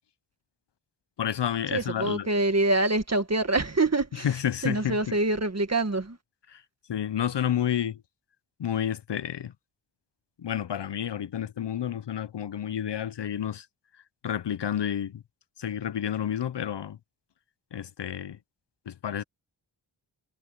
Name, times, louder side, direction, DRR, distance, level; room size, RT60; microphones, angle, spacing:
voice 1, 1.2-2.3 4.2-5.1 6.5-6.6 6.9-8.0 8.6-9.5 10.4-13.7 13.9-15.2 15.6-17.0 17.7-18.4 18.9-19.2, left 9 dB, 65° left, 0.6 m, -30 dB
voice 2, 1.7-4.3 4.6-6.2, right 2 dB, 35° right, 1.8 m, -25 dB
wide cardioid pair, 80°, 46 cm